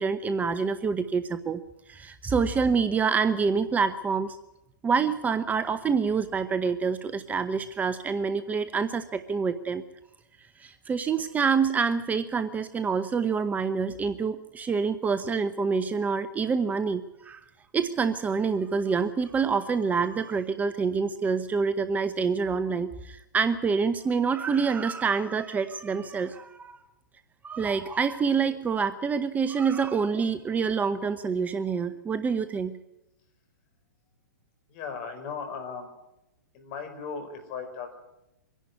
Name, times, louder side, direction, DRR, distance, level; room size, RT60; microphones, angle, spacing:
voice 1, 0.0-1.6 1.9-4.4 4.8-9.8 10.6-17.4 17.7-26.8 27.4-32.8, right 5 dB, 15° right, 11 dB, 0.8 m, -27 dB
voice 2, 34.7-35.9 36.5-38.0, left 5 dB, 45° left, 7 dB, 5.0 m, -37 dB
24.5 x 11.0 x 9.7 m, 0.92 s
hypercardioid pair, 120°, 10 cm